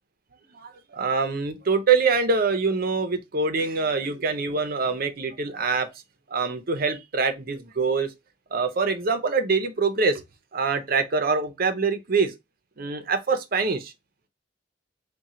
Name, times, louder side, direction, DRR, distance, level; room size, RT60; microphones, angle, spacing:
voice 1, 0.5-5.9 6.3-8.1 8.5-10.2 10.5-12.4 12.8-13.9, right 4 dB, 55° right, 0.7 m, -24 dB
4.2 x 2.3 x 3.7 m
head